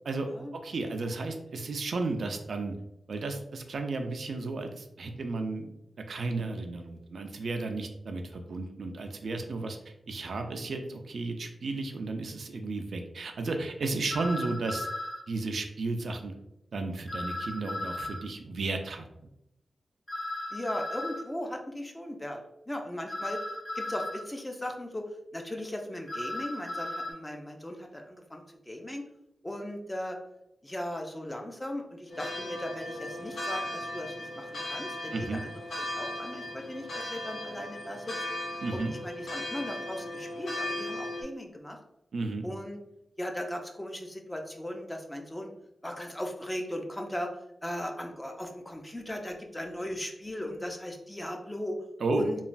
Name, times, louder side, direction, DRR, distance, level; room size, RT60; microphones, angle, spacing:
voice 1, 0.5-2.7 3.1-5.7 6.1-9.8 10.1-14.9 15.3-16.3 16.7-19.0 35.1-35.4 38.6-38.9 42.1-42.5 52.0-52.3, right 3 dB, 70° right, 5 dB, 0.3 m, -33 dB
sound 1, 14.1-15.2 17.1-18.2 20.1-21.2 23.1-24.2 26.1-27.1, left 1 dB, 40° left, 1.3 m, -36 dB
voice 2, 20.5-23.5 23.7-29.0 29.4-30.2 30.6-38.2 38.7-41.8 42.4-42.8 43.2-45.5 45.8-47.3 47.6-51.8 52.1-52.4, left 1 dB, 15° left, 2 dB, 0.4 m, -38 dB
sound 2, 32.1-41.2, left 1 dB, 65° left, 0.5 m, -37 dB
3.1 x 2.2 x 2.5 m, 0.82 s
wide cardioid pair, 130°, 0 cm